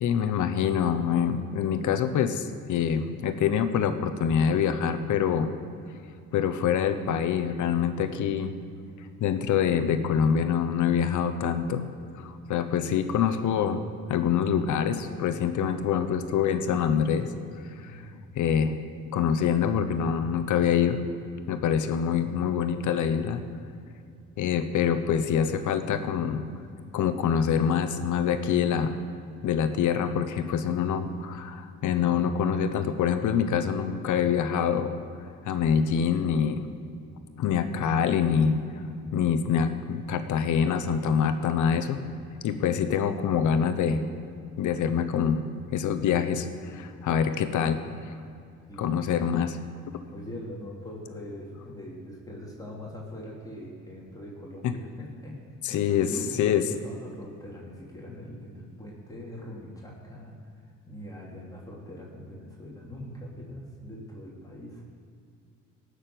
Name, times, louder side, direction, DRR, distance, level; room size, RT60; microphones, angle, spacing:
voice 1, 0.0-5.5 6.3-8.5 9.2-11.8 12.2-13.8 14.1-17.3 18.3-18.8 19.1-21.0 21.5-23.4 24.4-26.4 26.9-29.0 29.4-34.9 35.4-36.7 37.4-38.6 39.1-42.0 42.4-44.0 44.6-45.4 45.7-47.8 48.8-49.6 54.6-54.7 55.6-56.1 56.3-56.6, left 7 dB, 75° left, 9 dB, 1.1 m, -25 dB
voice 2, 17.8-18.2 31.1-31.2 48.7-49.1 50.1-55.4 55.7-64.9, left 1 dB, 10° left, -4 dB, 3.0 m, -42 dB
18.0 x 6.7 x 7.8 m, 2.4 s
cardioid pair, 90°, 30 cm